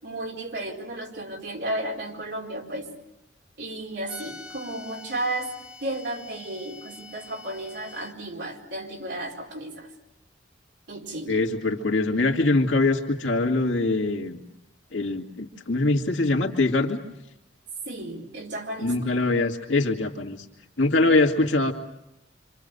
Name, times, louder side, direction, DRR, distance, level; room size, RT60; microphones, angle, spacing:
voice 1, 0.0-2.9 3.6-9.9 10.9-11.4 17.8-18.9, right 1 dB, 65° right, -1 dB, 4.5 m, -33 dB
sound 1, 4.1-8.1, left 2 dB, 5° right, 2.4 m, -45 dB
voice 2, 11.3-14.4 14.9-17.0 18.8-20.5 20.8-21.7, left 2 dB, 80° left, 2 dB, 2.4 m, -23 dB
27.0 x 26.5 x 6.8 m, 0.85 s
head